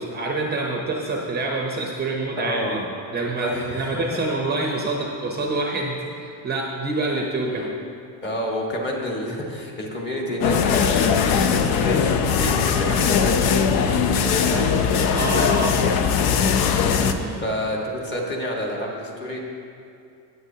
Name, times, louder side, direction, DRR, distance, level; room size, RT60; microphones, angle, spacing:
voice 1, 0.0-2.8 3.1-7.6 15.1-16.1 17.0-17.5, right 2 dB, 20° right, 0 dB, 0.7 m, -26 dB
voice 2, 2.4-2.9 3.4-4.2 7.5-7.7 8.2-15.2 17.4-19.4, left 1 dB, 25° left, -1 dB, 1.4 m, -29 dB
sound 1, 10.4-17.1, left 6 dB, 50° left, 0.6 m, -20 dB
17.0 x 8.2 x 2.8 m, 2.6 s
cardioid pair, 165°, 45 cm